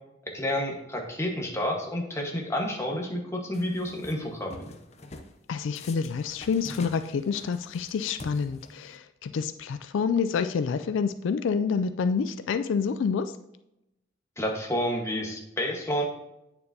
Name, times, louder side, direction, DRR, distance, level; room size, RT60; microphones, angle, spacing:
voice 1, 0.3-4.5 14.4-16.0, left 1 dB, 15° left, 0 dB, 1.3 m, -30 dB
sound 1, 3.5-4.2 4.5-5.3 5.8-9.0, left 2 dB, 35° left, 0.6 m, -45 dB
voice 2, 5.5-13.3, left 5 dB, 75° left, 11 dB, 0.3 m, -28 dB
8.7 x 6.8 x 2.7 m, 0.87 s
head